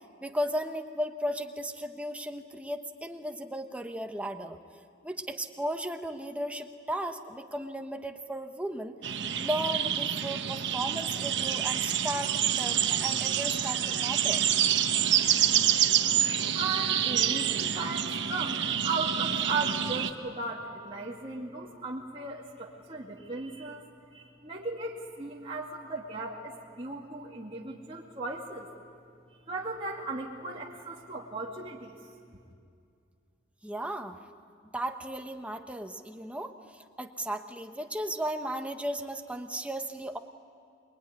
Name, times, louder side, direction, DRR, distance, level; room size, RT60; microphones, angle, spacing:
voice 1, 0.2-4.6 5.0-9.0 9.4-14.4 33.6-34.2 34.6-40.2, equal, 5° right, 6 dB, 1.1 m, -35 dB
sound 1, 9.0-20.1, right 9 dB, 65° right, 1.1 m, -27 dB
voice 2, 16.5-23.8 24.1-28.7 29.5-32.0, right 3 dB, 30° right, -4 dB, 2.1 m, -36 dB
24.5 x 22.0 x 9.8 m, 2.3 s
head